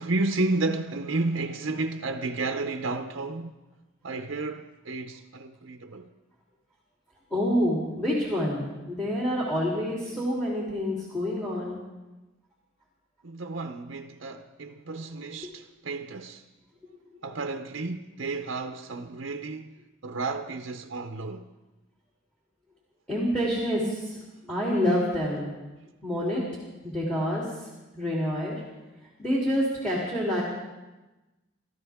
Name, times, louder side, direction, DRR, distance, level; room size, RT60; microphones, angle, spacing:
voice 1, 0.0-3.7 4.0-6.1 13.2-16.4 17.2-21.5, right 3 dB, 70° right, 0.7 m, -32 dB
voice 2, 7.3-11.8 23.1-24.2 24.5-25.6 26.0-26.4 26.8-27.4 27.9-28.5 29.2-30.4, equal, 5° left, 3.2 m, -27 dB
29.0 x 13.5 x 3.6 m
head